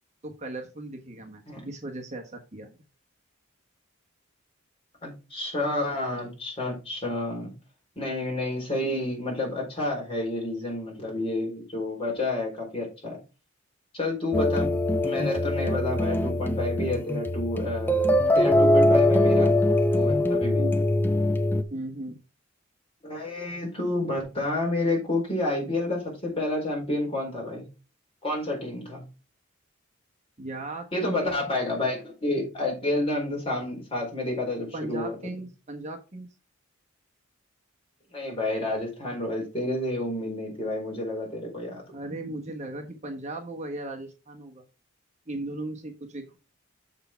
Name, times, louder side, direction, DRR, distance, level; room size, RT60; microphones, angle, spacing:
voice 1, 0.2-2.8 20.6-20.8 21.7-22.2 30.4-31.5 34.7-36.3 41.9-44.6 45.3-46.4, right 2 dB, 35° right, 2 dB, 1.3 m, -37 dB
voice 2, 5.0-7.5 8.0-13.2 13.9-14.7 15.0-19.5 19.9-20.6 23.0-27.6 28.2-29.0 30.9-35.1 38.1-41.8, left 2 dB, 30° left, -1 dB, 4.4 m, -29 dB
sound 1, 14.3-21.6, left 1 dB, 10° left, 0.6 m, -22 dB
7.1 x 6.6 x 4.5 m, 0.31 s
head